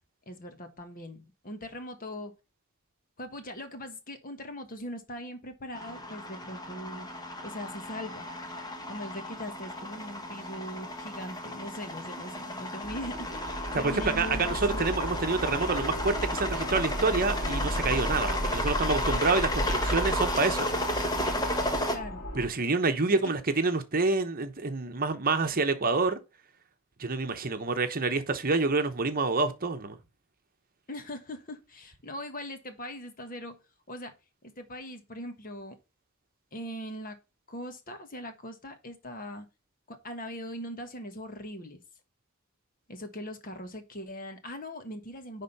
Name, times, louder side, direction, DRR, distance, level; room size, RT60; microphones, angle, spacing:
voice 1, 0.3-2.3 3.2-7.1 7.4-8.3 8.9-14.9 21.9-22.2 23.1-23.3 30.9-33.6 33.9-34.1 34.4-35.7 36.5-37.2 37.5-39.5 39.9-41.8 42.9-45.4, equal, 40° left, 1.4 m, -40 dB
sound 1, 5.7-22.0, left 1 dB, 20° left, 1.4 m, -33 dB
sound 2, 12.8-22.5, equal, 60° left, 2.1 m, -34 dB
voice 2, 13.8-20.9 21.5-21.6 22.3-26.2 27.0-30.0, right 3 dB, 45° right, 1.0 m, -27 dB
10.0 x 3.7 x 5.5 m
head